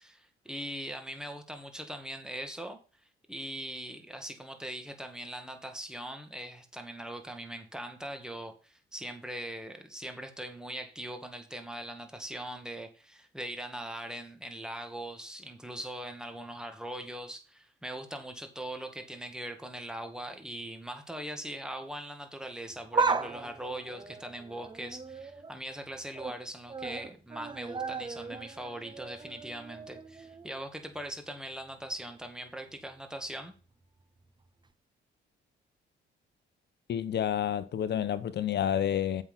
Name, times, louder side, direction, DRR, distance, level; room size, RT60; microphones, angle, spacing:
voice 1, 0.0-2.8 3.3-33.5, right 1 dB, 5° right, 2.0 m, -41 dB
sound 1, 22.7-25.5 25.9-26.4 26.7-30.6 31.0-31.1 32.1-32.2, right 4 dB, 20° right, 0.9 m, -35 dB
voice 2, 36.9-39.2, left 9 dB, 60° left, 0.8 m, -29 dB
7.9 x 6.0 x 5.6 m
cardioid pair, 90°, 20 cm